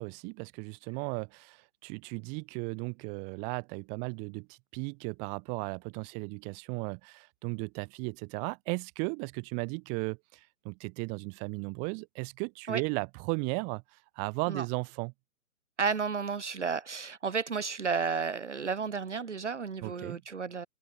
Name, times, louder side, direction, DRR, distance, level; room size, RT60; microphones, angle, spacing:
voice 1, 0.0-13.8 14.2-15.1 19.8-20.2, right 37 dB, 15° right, 7.3 m, -36 dB
voice 2, 15.8-20.7, right 5 dB, 50° right, 2.5 m, -32 dB
figure-of-eight pair, 145°, 44 cm